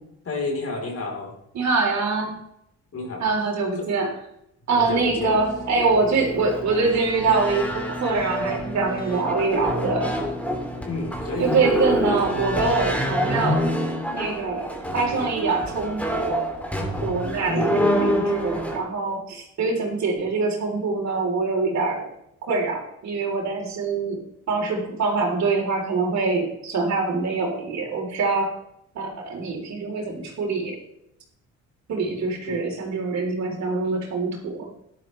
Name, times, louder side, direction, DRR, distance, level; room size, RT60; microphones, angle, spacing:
voice 1, 0.2-1.3 2.9-3.3 3.8-3.9 4.7-5.4 10.8-12.2 17.5-17.8 32.5-32.6, left 3 dB, 50° left, 1 dB, 3.8 m, -31 dB
voice 2, 1.5-2.4 3.2-4.1 4.7-10.2 11.4-13.7 14.1-16.5 17.0-22.1 22.4-24.2 24.5-28.5 29.0-30.8 31.9-34.7, right 4 dB, 65° right, 0 dB, 3.5 m, -24 dB
Keyboard (musical), 4.8-13.5, equal, 30° left, 2.3 m, -37 dB
sound 1, 5.5-18.8, equal, 5° left, 2.7 m, -27 dB
12.5 x 11.5 x 3.2 m, 0.78 s
cardioid pair, 90°, 30 cm